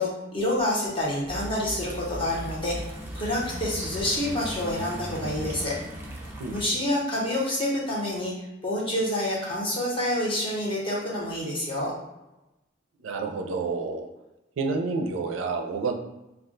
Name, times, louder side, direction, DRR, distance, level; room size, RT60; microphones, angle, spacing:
voice 1, 0.0-2.8 3.1-5.8 6.5-11.9, left 1 dB, 25° left, -4 dB, 0.8 m, -28 dB
sound 1, 1.2-6.6, equal, 10° right, 0.4 m, -37 dB
voice 2, 6.4-6.8 13.0-14.1 14.6-15.9, right 4 dB, 90° right, 4 dB, 0.4 m, -29 dB
2.3 x 2.1 x 3.7 m, 0.97 s
head